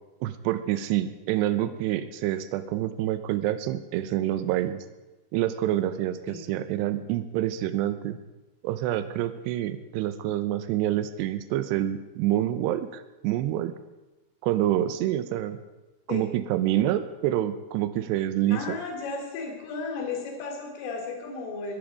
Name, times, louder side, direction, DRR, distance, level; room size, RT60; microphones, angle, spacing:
voice 1, 0.2-4.8 5.3-8.2 8.6-13.7 14.4-15.6 16.1-18.8, right 13 dB, 80° right, 12 dB, 2.5 m, -27 dB
voice 2, 18.5-21.8, left 4 dB, 75° left, 2 dB, 5.1 m, -34 dB
22.0 x 11.5 x 5.0 m, 1.1 s
omnidirectional pair, 5.6 m